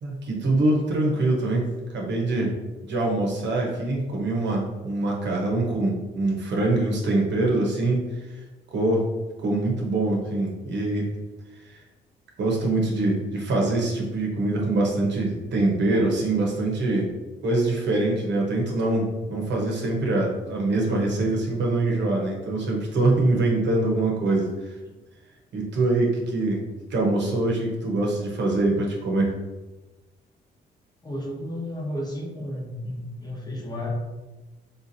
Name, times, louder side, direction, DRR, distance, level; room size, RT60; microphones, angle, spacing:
voice 1, 0.0-2.5 2.8-8.4 8.7-9.1 9.4-11.1 11.5-11.8 12.4-17.1 17.4-24.7 25.5-26.6 26.9-29.3, right 2 dB, 65° right, -1 dB, 0.9 m, -24 dB
voice 2, 31.0-33.9, left 1 dB, 20° left, -3 dB, 0.9 m, -33 dB
3.7 x 2.8 x 2.6 m, 1.2 s
cardioid pair, 90°, 20 cm